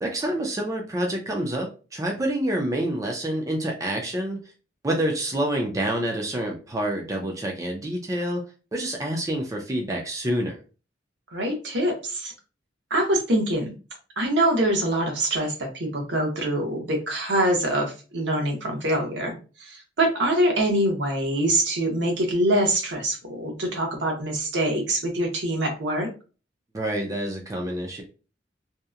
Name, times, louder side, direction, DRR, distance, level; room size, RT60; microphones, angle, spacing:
voice 1, 0.0-4.4 4.8-8.4 8.7-10.6 26.7-28.0, right 1 dB, 20° right, 1 dB, 0.4 m, -27 dB
voice 2, 11.3-12.3 12.9-13.7 14.2-26.1, right 1 dB, 75° right, 1 dB, 0.8 m, -24 dB
2.7 x 2.1 x 2.3 m, 0.33 s
head